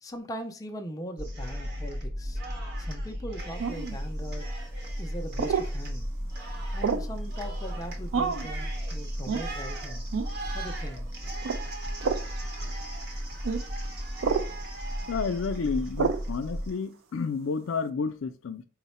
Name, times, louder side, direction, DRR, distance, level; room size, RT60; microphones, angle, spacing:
voice 1, 0.0-2.4 2.8-4.5 5.0-6.1 6.7-10.0 10.5-11.1, equal, 20° left, 0.3 m, -40 dB
sound 1, 1.2-16.7, equal, 35° right, 0.7 m, -35 dB
Cheering, 1.2-2.0 2.3-16.7, right 3 dB, 60° right, 0.9 m, -43 dB
sound 2, 3.6-4.0 5.4-5.7 6.8-7.1 8.1-8.5 9.3-9.5 10.1-10.3 11.4-11.6 12.0-12.3 13.4-13.6 14.2-14.5 16.0-16.3, right 5 dB, 80° right, 0.4 m, -28 dB
voice 2, 15.1-18.7, left 5 dB, 85° left, 0.4 m, -31 dB
3.8 x 2.1 x 4.1 m
head